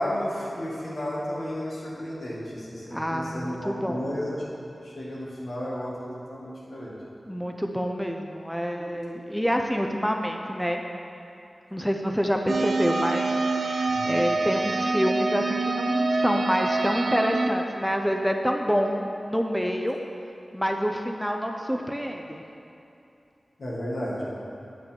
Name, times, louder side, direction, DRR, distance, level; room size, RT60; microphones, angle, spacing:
voice 1, 0.0-4.4 4.8-5.9 6.3-6.9 13.9-14.3 23.6-24.3, left 1 dB, 75° left, -6 dB, 1.9 m, -32 dB
voice 2, 2.9-4.0 7.3-10.8 11.7-20.0 20.5-22.4, equal, ahead, 2 dB, 0.5 m, -27 dB
sound 1, 12.5-17.5, right 3 dB, 75° right, 0.5 m, -26 dB
8.4 x 6.3 x 4.5 m, 2.7 s
wide cardioid pair, 80°, 0 cm